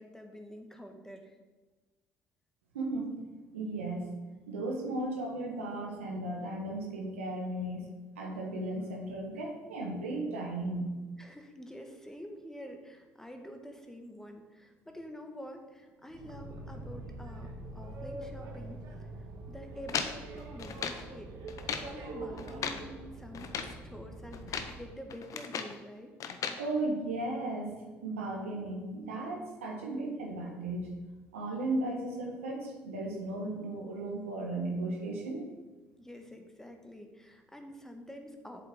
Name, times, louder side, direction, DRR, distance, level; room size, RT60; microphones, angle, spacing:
voice 1, 0.0-1.4 11.2-17.5 17.7-26.1 36.0-38.7, equal, 5° left, 4 dB, 1.5 m, -47 dB
voice 2, 2.7-3.2 3.5-4.1 4.5-7.9 8.2-11.0 26.6-30.9 31.3-35.5, right 2 dB, 90° right, 0 dB, 1.4 m, -35 dB
Boat Water vehicle, 16.1-24.9, right 2 dB, 65° right, 1.4 m, -44 dB
sound 1, 19.9-21.1 21.5-21.9 22.4-22.9 23.3-23.8 24.3-24.8 25.1-25.8 26.2-26.6, left 7 dB, 55° left, 0.8 m, -37 dB
7.7 x 7.6 x 3.7 m, 1.2 s
hypercardioid pair, 55°, 7 cm